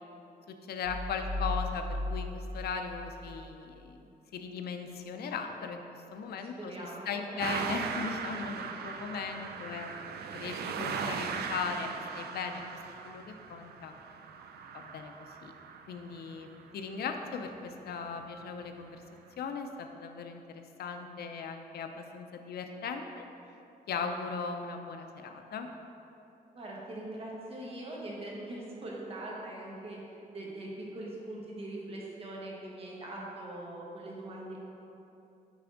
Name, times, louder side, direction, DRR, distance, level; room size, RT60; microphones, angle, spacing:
voice 1, 0.5-4.0 4.3-5.8 6.1-9.9 10.3-12.6 13.0-13.9 14.7-15.1 15.4-15.5 15.9-19.0 19.4-23.2 23.9-25.7, left 5 dB, 80° left, 5 dB, 0.5 m, -38 dB
sound 1, 0.8-3.5, left 1 dB, 10° left, 0.3 m, -36 dB
voice 2, 6.6-7.5 26.5-30.0 30.3-34.6, right 1 dB, 35° right, -4 dB, 1.3 m, -42 dB
sound 2, 7.4-16.7 17.9-18.0 18.9-19.0, right 6 dB, 85° right, 0.4 m, -39 dB
9.4 x 3.4 x 3.8 m, 2.8 s
wide cardioid pair, 130°, 16 cm